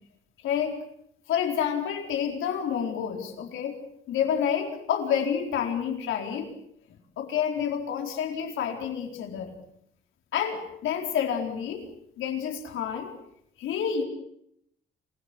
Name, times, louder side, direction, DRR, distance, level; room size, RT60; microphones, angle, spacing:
voice 1, 0.4-0.8 1.3-3.8 4.1-6.5 7.2-9.5 10.3-11.9 12.2-13.1 13.6-14.0, left 8 dB, 80° left, 3 dB, 4.4 m, -28 dB
27.5 x 16.5 x 8.6 m, 0.74 s
cardioid pair, 90°, 20 cm